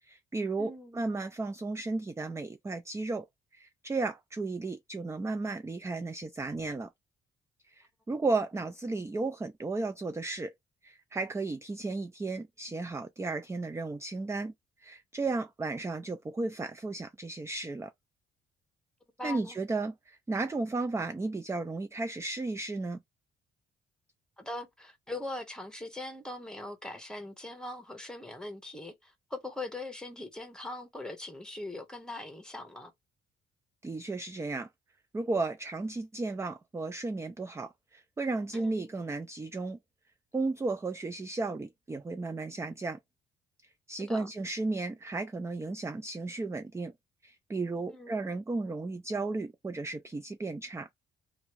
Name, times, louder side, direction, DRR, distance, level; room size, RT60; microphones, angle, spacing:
voice 1, 0.0-3.3 3.5-6.9 7.7-10.5 10.8-14.5 14.8-17.9 19.2-23.0 33.8-34.7 35.1-39.8 40.3-43.0 43.9-46.9 47.2-50.9, right 3 dB, 15° right, 0.3 m, -34 dB
voice 2, 0.6-1.0 19.2-19.6 24.4-32.9 38.5-38.9 44.0-44.3 47.9-48.2, left 2 dB, 5° left, 1.1 m, -41 dB
3.0 x 2.5 x 3.1 m
cardioid pair, 90°, 20 cm